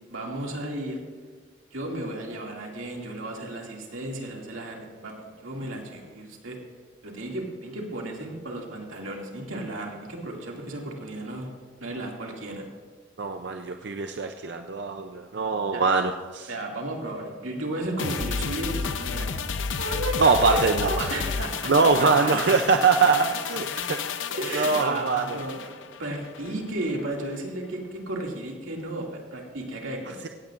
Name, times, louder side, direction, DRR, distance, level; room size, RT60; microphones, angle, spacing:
voice 1, 0.1-1.0 1.7-6.6 7.0-11.5 11.8-12.7 15.7-15.8 16.5-19.3 19.8-22.8 24.3-25.7 26.0-30.3, right 1 dB, 90° right, 0 dB, 2.3 m, -34 dB
voice 2, 13.2-16.5 20.2-21.1 21.7-24.0 24.5-25.4, right 4 dB, 55° right, 6 dB, 0.5 m, -23 dB
sound 1, 18.0-26.6 26.9-27.0, left 5 dB, 70° left, 0.7 m, -31 dB
17.0 x 15.0 x 2.5 m, 1.5 s
head